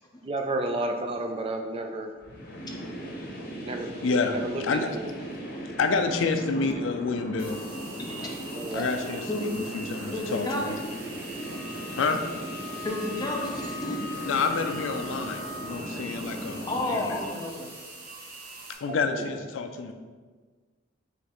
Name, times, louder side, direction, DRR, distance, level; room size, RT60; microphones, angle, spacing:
voice 1, 0.2-2.1 3.6-3.9 4.3-5.1 8.5-8.9 18.9-19.4, right 2 dB, 30° right, 4 dB, 0.3 m, -32 dB
sound 1, 2.2-17.2, right 1 dB, 50° left, 0.7 m, -38 dB
voice 2, 4.0-4.4 4.6-4.9 5.8-7.6 8.7-10.8 11.9-12.2 14.3-17.1 18.7-19.9, left 4 dB, 75° left, 6 dB, 0.4 m, -28 dB
sound 2, 7.4-18.7, right 2 dB, 50° right, 0.9 m, -43 dB
voice 3, 8.0-8.8 9.3-9.5 10.1-10.8 12.8-14.0 15.9-16.0 16.7-17.7, left 1 dB, 20° left, 0 dB, 0.6 m, -32 dB
Wind instrument woodwind instrument, 11.3-15.9, left 5 dB, 90° right, 0.8 m, -42 dB
4.9 x 3.1 x 3.0 m, 1.4 s
head